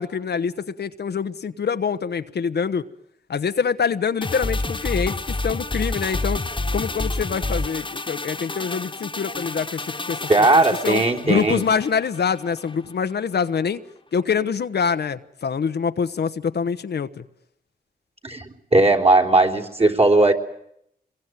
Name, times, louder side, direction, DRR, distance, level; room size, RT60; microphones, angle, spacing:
voice 1, 0.0-2.9 3.3-6.4 6.7-13.8 14.1-17.2, left 6 dB, 75° left, 1.1 m, -25 dB
sound 1, 4.2-12.8 13.1-13.2, left 2 dB, 30° left, 1.5 m, -29 dB
voice 2, 10.3-11.6 18.2-20.3, right 2 dB, 35° right, 3.6 m, -17 dB
26.0 x 22.0 x 9.2 m
cardioid pair, 70°, 17 cm